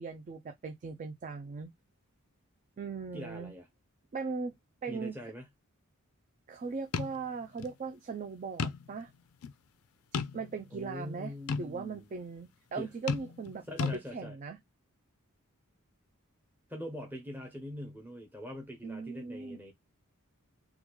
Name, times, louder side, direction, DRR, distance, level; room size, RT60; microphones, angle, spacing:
voice 1, 0.0-1.7 2.8-3.5 4.1-4.5 4.8-5.1 6.5-9.1 10.1-13.7 14.1-14.6 18.8-19.6, right 4 dB, 35° right, 0.4 m, -39 dB
voice 2, 3.1-3.7 4.9-5.5 10.7-12.2 12.8-12.9 13.7-14.4 16.7-19.7, equal, 10° right, 0.7 m, -43 dB
sound 1, 6.9-7.2 7.6-7.7 8.6-9.0 9.4-9.5 10.1-10.7 11.5-11.7 13.1-13.5 13.8-14.0, left 5 dB, 75° left, 0.4 m, -33 dB
3.5 x 2.3 x 2.9 m
head